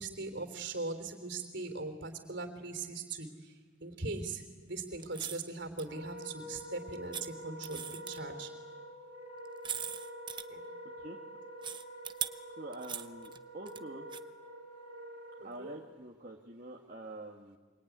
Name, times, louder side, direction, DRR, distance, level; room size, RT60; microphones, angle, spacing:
voice 1, 0.0-3.5 3.8-8.5 10.5-10.6 15.4-15.7, right 3 dB, 60° right, 8 dB, 3.4 m, -40 dB
sound 1, 5.0-5.5 5.8-5.9 7.1-7.3 7.6-8.3 9.5-10.4 11.6-12.3 12.7-13.8 14.1-14.2, right 8 dB, 25° right, 0.8 m, -40 dB
Wind instrument woodwind instrument, 5.8-15.9, equal, 35° left, 5.1 m, -47 dB
voice 2, 12.6-14.1 15.4-17.6, right 1 dB, 40° right, -1 dB, 1.8 m, -46 dB
25.0 x 24.5 x 9.6 m, 1.4 s
head